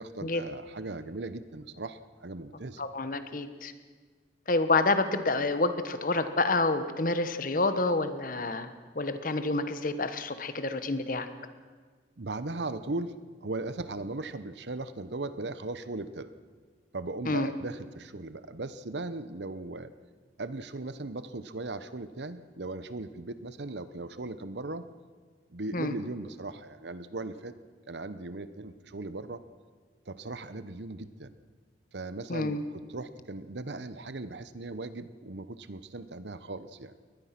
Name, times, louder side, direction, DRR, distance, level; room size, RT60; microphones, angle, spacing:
voice 1, 0.0-2.8 12.2-16.3 16.9-19.9 20.4-24.9 25.5-27.5 27.9-29.4 30.1-31.3 31.9-36.9, right 2 dB, 75° right, 13 dB, 1.0 m, -38 dB
voice 2, 2.8-3.7 4.5-8.7 8.9-11.3 17.2-17.5 25.7-25.9 32.3-32.6, left 2 dB, 50° left, 10 dB, 1.3 m, -28 dB
22.5 x 19.5 x 6.0 m, 1.5 s
head